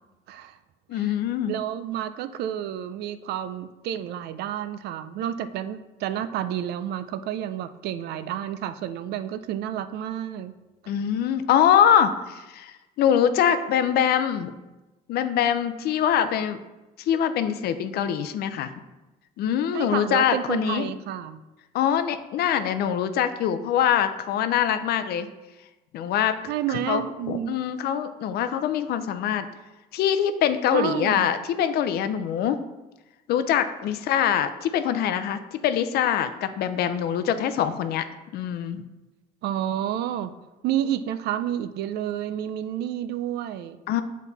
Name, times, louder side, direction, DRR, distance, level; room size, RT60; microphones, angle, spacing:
voice 1, 0.9-1.5 10.9-14.5 15.1-16.6 17.1-18.7 19.4-20.9 21.7-25.3 25.9-26.4 26.7-27.0 27.3-29.5 29.9-32.6 33.3-38.1 38.3-38.8 43.9-44.0, left 9 dB, 70° left, 11 dB, 0.5 m, -23 dB
voice 2, 1.5-10.5 19.7-21.4 26.5-27.6 30.7-31.3 39.4-40.3 40.6-43.8, right 10 dB, 75° right, 11 dB, 0.4 m, -30 dB
7.2 x 4.2 x 4.0 m, 1.1 s
cardioid pair, 110°, 17 cm